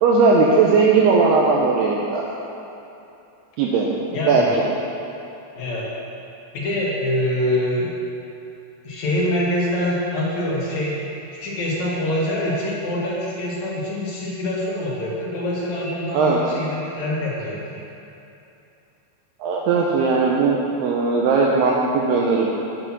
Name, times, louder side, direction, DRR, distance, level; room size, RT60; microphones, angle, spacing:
voice 1, 0.0-2.2 3.6-3.9 4.3-4.6 16.1-16.4 19.4-22.5, right 4 dB, 80° right, -3 dB, 2.5 m, -18 dB
voice 2, 4.1-4.5 5.5-5.9 6.5-7.9 8.8-11.0 11.3-17.8, left 1 dB, 50° left, -5 dB, 2.5 m, -25 dB
8.3 x 7.9 x 6.1 m, 2.8 s
omnidirectional pair, 5.1 m